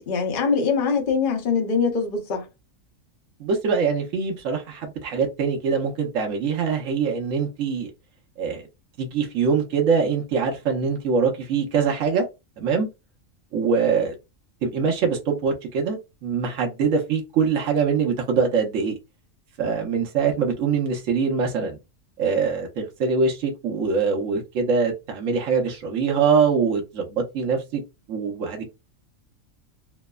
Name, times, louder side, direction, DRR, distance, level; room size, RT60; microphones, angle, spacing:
voice 1, 0.1-2.5, left 5 dB, 45° left, 0.8 m, -23 dB
voice 2, 3.4-7.9 8.4-8.6 9.0-12.2 12.6-12.9 13.5-14.1 14.6-19.0 19.6-21.8 22.2-27.8 28.1-28.7, right 5 dB, 75° right, 1.1 m, -23 dB
3.2 x 2.0 x 2.2 m
omnidirectional pair, 1.4 m